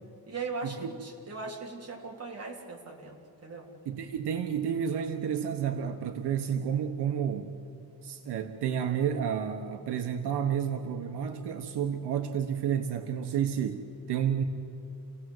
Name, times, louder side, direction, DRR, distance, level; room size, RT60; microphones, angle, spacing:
voice 1, 0.3-3.7, right 4 dB, 40° right, 0 dB, 3.4 m, -39 dB
voice 2, 3.8-7.5 8.0-14.4, right 8 dB, 80° right, 6 dB, 1.3 m, -30 dB
28.0 x 17.5 x 8.0 m, 2.6 s
wide cardioid pair, 160°, 39 cm